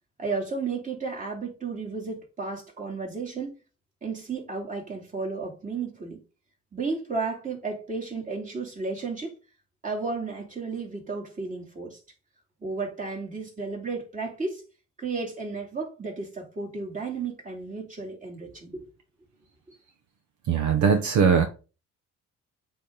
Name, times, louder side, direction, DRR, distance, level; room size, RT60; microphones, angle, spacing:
voice 1, 0.2-3.6 4.0-6.2 6.7-9.4 9.8-12.0 12.6-14.6 15.0-18.9, right 4 dB, 25° right, 2.9 m, -33 dB
voice 2, 20.5-21.5, right 6 dB, 70° right, 1.0 m, -20 dB
8.3 x 3.8 x 4.0 m
cardioid pair, 90°, 30 cm